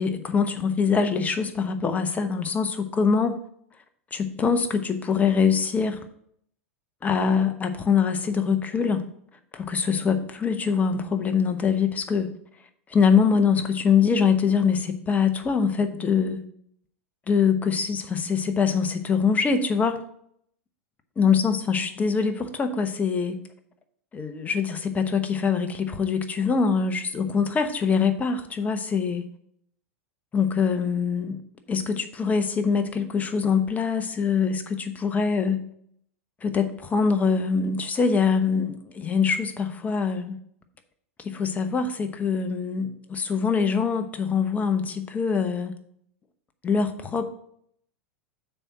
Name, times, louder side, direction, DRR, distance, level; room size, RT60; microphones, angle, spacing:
voice 1, 0.0-3.4 4.1-6.0 7.0-9.1 9.5-12.3 12.9-16.4 17.3-20.0 21.2-23.4 24.1-29.2 30.3-31.4 31.7-35.6 36.4-40.4 41.2-45.7 46.6-47.3, left 6 dB, 20° left, 7 dB, 0.9 m, -24 dB
6.7 x 4.3 x 5.9 m, 0.67 s
hypercardioid pair, 95°, 7 cm